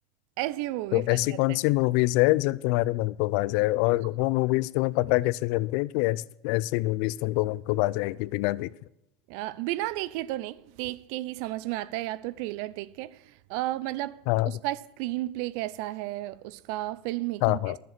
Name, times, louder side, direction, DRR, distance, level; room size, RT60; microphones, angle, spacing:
voice 1, 0.4-1.6 9.3-17.8, right 16 dB, 65° right, 0.5 m, -33 dB
voice 2, 0.9-8.7 14.3-14.5 17.4-17.8, left 20 dB, 65° left, 0.4 m, -25 dB
11.0 x 7.5 x 5.9 m
hypercardioid pair, 90°, 0 cm